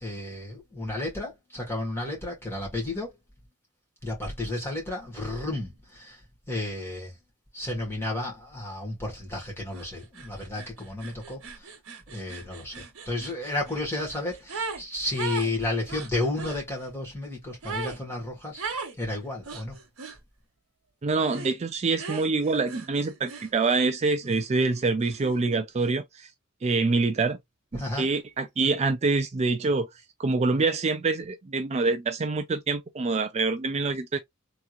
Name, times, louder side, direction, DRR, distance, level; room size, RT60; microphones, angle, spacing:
voice 1, 0.0-3.1 4.0-6.2 6.5-7.1 7.5-11.4 12.1-18.6 19.0-19.7 27.7-28.1, left 2 dB, 10° left, 1.7 m, -32 dB
sound 1, 9.7-9.9 10.1-14.8 15.1-16.6 17.6-18.0 18.6-19.0 19.4-20.2 21.3-21.6 22.0-23.8 24.2-25.6, right 4 dB, 85° right, 1.1 m, -38 dB
voice 2, 21.0-26.3 26.6-27.4 27.7-29.9 30.2-34.2, right 3 dB, 30° right, 0.4 m, -26 dB
3.4 x 3.0 x 2.5 m
head